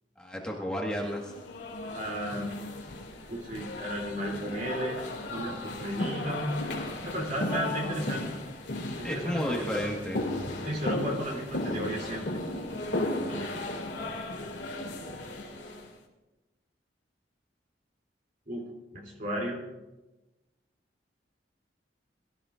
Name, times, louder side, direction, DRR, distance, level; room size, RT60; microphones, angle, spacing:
voice 1, 0.2-1.3 9.0-10.2, equal, 5° left, -2 dB, 1.6 m, -32 dB
sound 1, 1.2-15.9, left 2 dB, 75° left, 2.5 m, -35 dB
voice 2, 1.9-2.5 3.3-5.0 5.3-6.5 7.0-8.2 9.0-9.9 10.6-12.3 13.3-13.5 18.5-18.6 18.9-19.6, right 1 dB, 45° right, -1 dB, 3.0 m, -34 dB
22.0 x 14.0 x 2.5 m, 1.1 s
head